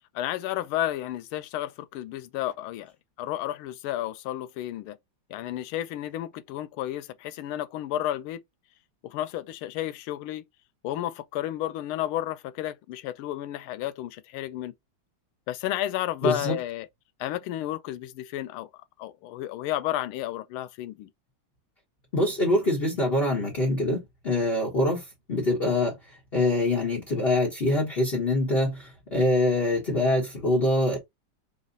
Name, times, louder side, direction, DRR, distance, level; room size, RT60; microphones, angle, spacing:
voice 1, 0.1-2.9 3.2-5.0 5.3-8.4 9.0-10.4 10.8-14.7 15.5-16.9 17.2-18.7 19.0-21.1, left 13 dB, 85° left, 1.4 m, -32 dB
voice 2, 16.2-16.6 22.1-25.9 26.3-31.0, left 1 dB, 30° left, 1.4 m, -24 dB
4.2 x 2.5 x 3.8 m
omnidirectional pair, 2.3 m